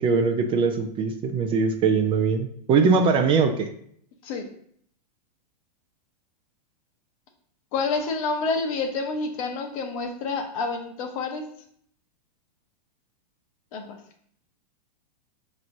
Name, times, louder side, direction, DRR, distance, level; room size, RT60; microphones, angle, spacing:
voice 1, 0.0-3.7, right 5 dB, 25° right, 7 dB, 0.4 m, -21 dB
voice 2, 7.7-11.5 13.7-14.0, left 4 dB, 55° left, 5 dB, 0.9 m, -28 dB
5.6 x 3.0 x 2.6 m, 0.65 s
hypercardioid pair, 120°, 21 cm